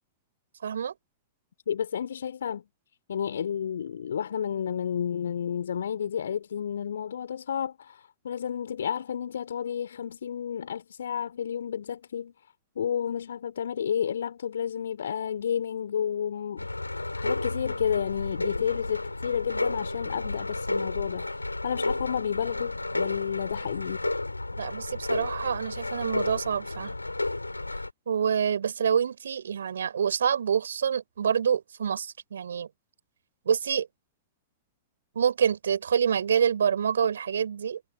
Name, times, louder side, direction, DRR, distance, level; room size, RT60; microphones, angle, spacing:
voice 1, 0.6-0.9 24.6-26.9 28.1-32.7 33.4-33.9 35.1-37.9, right 7 dB, 70° right, 6.7 m, -27 dB
voice 2, 1.7-2.6 3.1-12.3 12.8-16.7 17.2-24.1, left 8 dB, 65° left, 3.5 m, -31 dB
sound 1, 16.6-27.9, left 2 dB, 85° left, 3.6 m, -32 dB
figure-of-eight pair, 95°, 0 cm